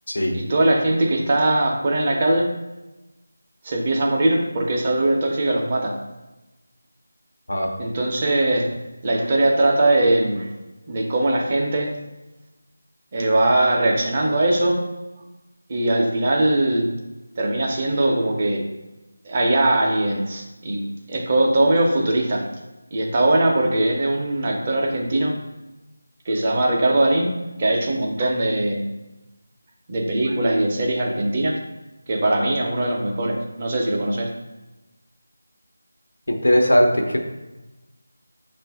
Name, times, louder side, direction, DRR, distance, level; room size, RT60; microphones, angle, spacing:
voice 1, 0.3-2.5 3.6-6.0 7.8-8.7 9.0-10.5 10.9-11.9 13.1-14.8 15.7-16.9 17.4-18.7 19.2-22.5 22.9-25.4 26.3-27.3 27.6-28.9 29.9-31.6 32.1-34.3, right 1 dB, 30° right, 0 dB, 0.6 m, -21 dB
voice 2, 36.3-37.2, equal, 85° left, 2 dB, 0.9 m, -18 dB
5.4 x 2.5 x 3.4 m, 1.0 s
figure-of-eight pair, 170°, 0 cm